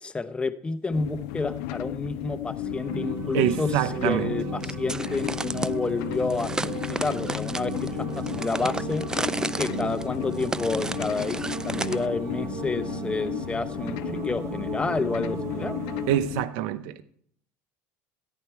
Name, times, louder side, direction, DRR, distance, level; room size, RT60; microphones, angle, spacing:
voice 1, 0.0-9.2 9.6-15.7, left 3 dB, 15° left, 0.8 m, -30 dB
sound 1, 0.9-16.4, left 15 dB, 75° left, 0.4 m, -34 dB
sound 2, 2.5-16.2, right 9 dB, 50° right, 1.1 m, -36 dB
voice 2, 3.3-4.4 16.1-17.0, right 11 dB, 75° right, 0.8 m, -25 dB
sound 3, 4.6-5.7 6.3-12.1, right 2 dB, 10° right, 0.4 m, -33 dB
14.0 x 9.6 x 4.7 m
supercardioid pair, 105°, 7 cm